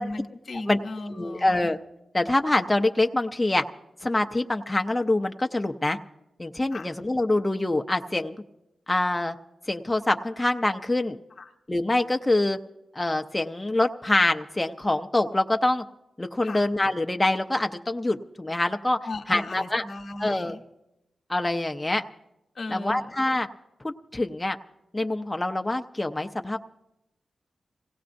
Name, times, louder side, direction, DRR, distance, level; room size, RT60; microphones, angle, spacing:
voice 1, 0.0-1.7 6.7-6.9 11.4-11.5 16.4-16.6 19.0-20.6 22.6-23.1, left 2 dB, 65° left, 5 dB, 0.9 m, -36 dB
voice 2, 1.1-1.8 2.1-3.6 4.0-6.0 6.4-8.3 8.9-9.4 9.7-11.2 11.7-12.6 12.9-15.8 16.2-19.0 19.3-19.8 20.2-20.6 21.3-22.0 22.7-23.5 23.8-24.6 24.9-26.6, left 2 dB, 15° left, 5 dB, 0.5 m, -25 dB
26.5 x 17.0 x 2.6 m, 0.89 s
cardioid pair, 80°, 0 cm